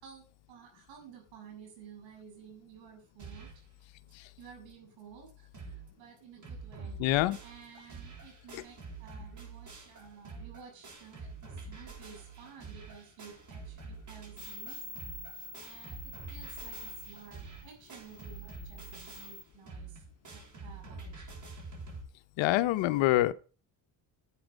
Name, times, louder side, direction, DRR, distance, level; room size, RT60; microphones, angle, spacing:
voice 1, 0.0-3.5 4.4-7.0 7.4-14.9 15.3-21.2, right 7 dB, 90° right, 7.1 m, -53 dB
sound 1, 3.2-3.7 4.1-4.2 4.4-4.5 5.0-5.1 5.3-5.9 6.2-22.0, right 3 dB, 40° right, 7.8 m, -46 dB
voice 2, 7.0-7.4 22.4-23.3, left 16 dB, 85° left, 0.9 m, -25 dB
sound 2, 14.4-19.4, left 1 dB, 10° left, 1.5 m, -47 dB
11.5 x 9.1 x 5.2 m
cardioid pair, 110°, 44 cm